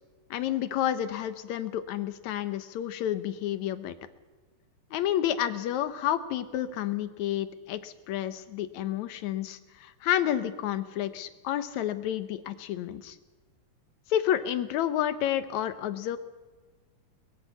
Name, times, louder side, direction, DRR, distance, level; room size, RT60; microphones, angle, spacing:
voice 1, 0.3-4.0 4.9-13.2 14.1-16.2, left 11 dB, 70° left, 12 dB, 2.3 m, -30 dB
22.5 x 20.5 x 5.8 m, 1.3 s
omnidirectional pair, 3.5 m